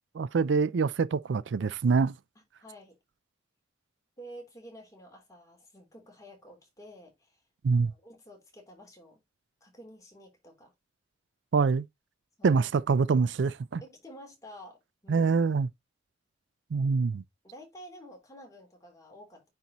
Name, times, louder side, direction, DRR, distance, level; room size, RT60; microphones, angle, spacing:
voice 1, 0.1-2.1 7.6-7.9 11.5-11.9 12.4-13.8 15.1-15.7 16.7-17.2, right 4 dB, 75° right, 0.4 m, -25 dB
voice 2, 2.6-3.0 4.2-7.4 7.7-9.2 9.6-10.7 12.4-12.7 13.8-15.3 16.8-16.9 17.4-19.5, equal, 20° left, 3.3 m, -50 dB
9.3 x 4.4 x 2.9 m
head